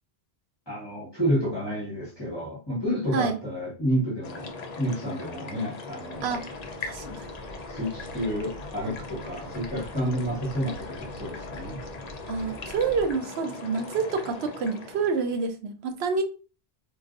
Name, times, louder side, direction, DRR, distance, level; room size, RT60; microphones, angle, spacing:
voice 1, 0.7-6.4 7.0-7.2 7.7-11.8, equal, 25° left, 1.3 m, -30 dB
sound 1, 4.2-15.4, left 3 dB, 50° left, 0.6 m, -40 dB
sound 2, 6.1-13.1, right 1 dB, 5° right, 0.6 m, -46 dB
voice 2, 6.2-6.5 6.8-7.3 12.3-16.2, right 5 dB, 80° right, 0.8 m, -28 dB
3.8 x 2.6 x 2.5 m
omnidirectional pair, 1.1 m